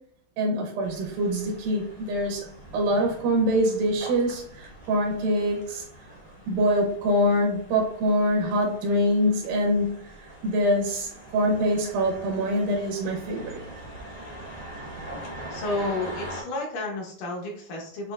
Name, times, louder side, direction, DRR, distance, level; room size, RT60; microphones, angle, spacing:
voice 1, 0.4-2.5 2.7-5.8 6.5-9.9 10.4-13.6, equal, 80° right, 0 dB, 2.4 m, -24 dB
sound 1, 0.8-16.4, right 1 dB, 25° left, 0.8 m, -43 dB
voice 2, 15.5-18.1, left 2 dB, 70° left, -1 dB, 2.5 m, -31 dB
7.5 x 2.7 x 2.4 m, 0.63 s
omnidirectional pair, 4.1 m